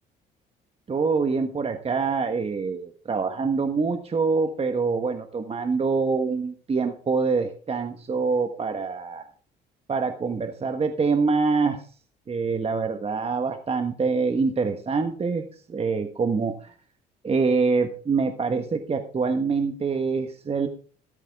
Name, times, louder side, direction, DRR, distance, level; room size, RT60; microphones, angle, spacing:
voice 1, 0.9-9.3 9.9-11.8 12.3-16.7 17.2-20.7, right 4 dB, 30° right, 7 dB, 1.3 m, -25 dB
13.5 x 10.5 x 3.6 m, 0.41 s
cardioid pair, 90°, 19 cm